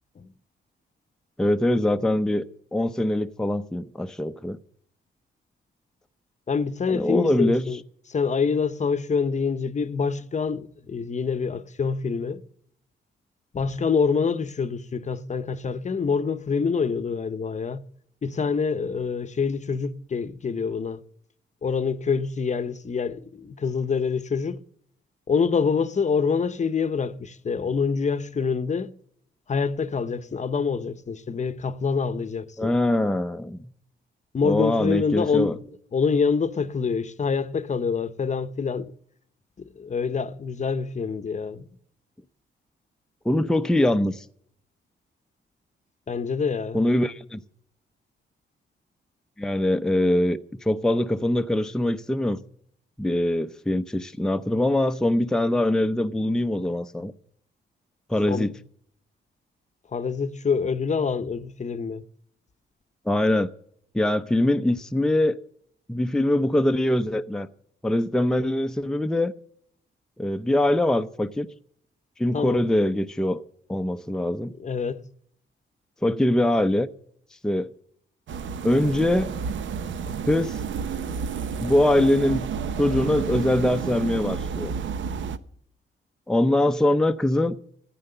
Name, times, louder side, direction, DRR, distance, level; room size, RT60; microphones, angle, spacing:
voice 1, 1.4-2.4 2.7-4.6 6.9-7.6 32.6-33.7 34.4-35.5 43.2-44.3 46.7-47.4 49.4-52.4 53.0-57.1 58.1-58.5 63.1-63.5 63.9-65.4 65.9-67.5 67.8-69.3 70.2-71.5 72.2-73.4 73.7-74.5 76.0-76.9 77.4-77.7 78.6-79.3 80.1-80.6 81.6-82.5 82.8-84.7 86.3-87.6, left 1 dB, 5° left, 0.6 m, -23 dB
voice 2, 6.5-7.8 8.1-12.4 13.5-17.8 18.2-21.0 21.6-24.6 25.3-28.9 29.5-32.7 34.3-35.5 35.9-38.9 39.6-41.7 46.1-46.8 58.3-58.5 59.9-62.0 72.3-72.6 74.6-75.1, left 5 dB, 35° left, 0.8 m, -26 dB
sound 1, 78.3-85.4, right 6 dB, 75° right, 0.9 m, -31 dB
14.0 x 10.0 x 6.6 m
cardioid pair, 95°, 20 cm